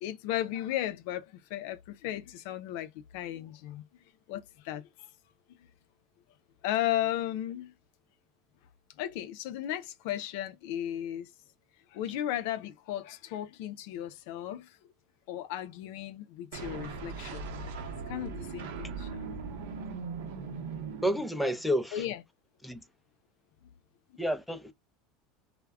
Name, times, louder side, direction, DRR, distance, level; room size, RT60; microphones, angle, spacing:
voice 1, 0.0-3.8 4.3-4.8 6.6-7.7 9.0-11.3 11.9-14.8 15.3-17.5 18.1-19.4 21.9-22.2, left 12 dB, 70° left, 0.3 m, -35 dB
sound 1, 16.5-21.7, right 5 dB, 85° right, 0.7 m, -39 dB
voice 2, 21.0-22.0 22.6-22.8 24.2-24.7, equal, 5° left, 0.5 m, -30 dB
2.3 x 2.0 x 3.4 m
supercardioid pair, 110°, 0 cm